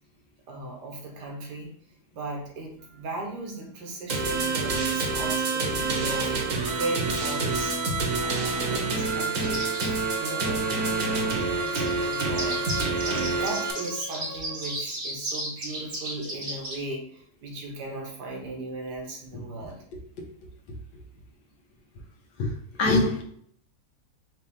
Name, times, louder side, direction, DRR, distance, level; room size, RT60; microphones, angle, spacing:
voice 1, 0.5-1.7 2.1-6.3 6.7-7.8 8.2-19.8, right 2 dB, 85° right, 1 dB, 1.6 m, -37 dB
sound 1, 4.1-13.7, right 3 dB, 60° right, 1.2 m, -27 dB
sound 2, 9.4-9.9 11.7-16.8, right 1 dB, 35° right, 1.0 m, -34 dB
Bowed string instrument, 9.6-14.8, left 1 dB, 30° left, 0.6 m, -39 dB
voice 2, 22.4-23.2, left 2 dB, 80° left, 2 dB, 1.4 m, -24 dB
4.8 x 3.0 x 3.5 m, 0.63 s
omnidirectional pair, 1.7 m